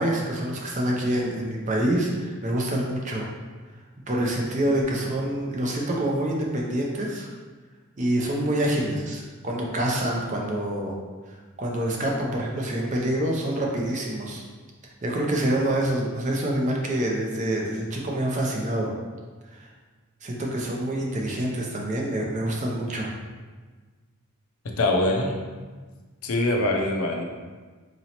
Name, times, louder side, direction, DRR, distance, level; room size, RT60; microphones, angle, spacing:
voice 1, 0.0-3.3 4.1-7.3 8.0-11.0 11.3-14.4 14.8-18.9 19.5-19.7 20.2-23.1, right 1 dB, 35° right, -1 dB, 0.5 m, -26 dB
voice 2, 24.8-25.4 26.2-27.2, left 2 dB, 75° left, 2 dB, 0.5 m, -23 dB
4.0 x 3.0 x 2.8 m, 1.4 s
head